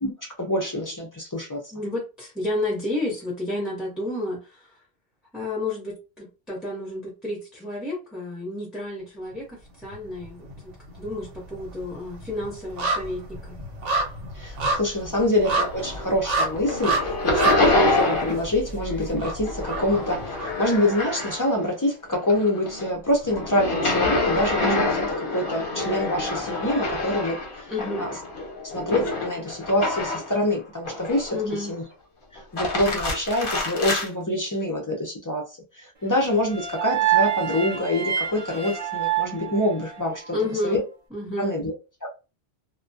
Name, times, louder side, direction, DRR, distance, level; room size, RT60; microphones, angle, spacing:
voice 1, 0.0-1.6 14.3-27.7 28.0-28.1 28.7-31.8 32.3-35.4 35.7-40.3 40.6-40.8 41.4-41.7 42.0-42.1, left 1 dB, 35° left, 0.3 m, -26 dB
voice 2, 1.7-4.8 5.3-13.6 27.7-28.1 31.3-31.7 40.3-40.8 41.1-41.6, left 2 dB, ahead, 0.7 m, -31 dB
sound 1, 9.8-10.6 10.9-20.9 21.2-21.3, right 2 dB, 80° right, 1.0 m, -29 dB
sound 2, 15.5-16.2 16.5-18.5 18.8-21.7 22.0-30.4 30.8-31.5 32.4-34.1, left 2 dB, 55° left, 0.8 m, -27 dB
sound 3, 36.2-40.4, right 11 dB, 45° right, 0.5 m, -27 dB
2.2 x 2.2 x 2.5 m
omnidirectional pair, 1.2 m